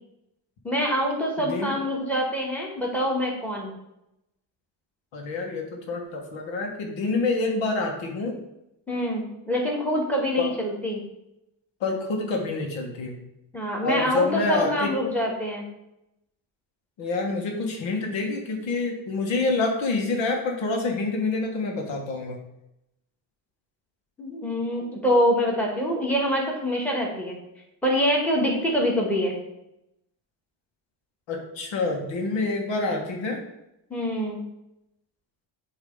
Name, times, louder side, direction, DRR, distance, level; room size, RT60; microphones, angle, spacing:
voice 1, 0.6-3.7 8.9-11.0 13.5-15.6 24.2-27.4 27.8-29.4 33.9-34.4, equal, 5° left, -2 dB, 1.8 m, -25 dB
voice 2, 1.4-1.7 5.1-8.4 10.4-10.5 11.8-13.2 13.8-14.9 17.0-22.4 31.3-33.4, left 3 dB, 75° left, 1 dB, 1.7 m, -27 dB
8.0 x 3.3 x 5.4 m, 0.85 s
cardioid pair, 115°, 46 cm